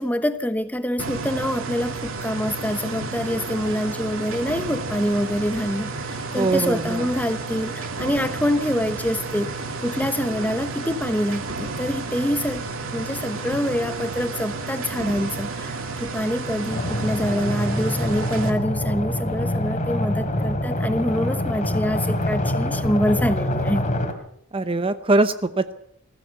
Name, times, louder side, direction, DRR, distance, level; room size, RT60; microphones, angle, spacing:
voice 1, 0.0-9.5 9.8-12.6 12.9-23.9, equal, 5° left, 10 dB, 1.1 m, -25 dB
sound 1, 1.0-18.5, right 3 dB, 60° right, 2.6 m, -31 dB
voice 2, 6.4-7.0 24.5-25.7, right 2 dB, 25° right, 11 dB, 0.8 m, -22 dB
sound 2, 16.7-24.1, left 1 dB, 35° left, 3.2 m, -25 dB
21.0 x 15.0 x 8.2 m, 0.74 s
head